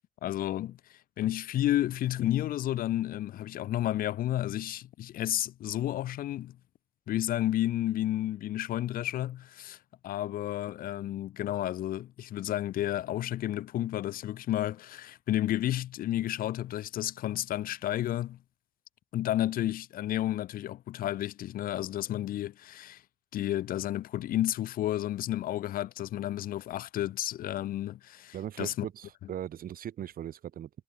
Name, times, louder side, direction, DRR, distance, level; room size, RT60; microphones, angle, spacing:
voice 1, 0.2-6.6 7.1-9.8 10.0-18.4 19.1-23.0 23.3-28.9, left 13 dB, 75° left, 0.4 m, -31 dB
voice 2, 28.3-30.7, right 10 dB, 75° right, 1.9 m, -39 dB
wide cardioid pair, 165°, 15 cm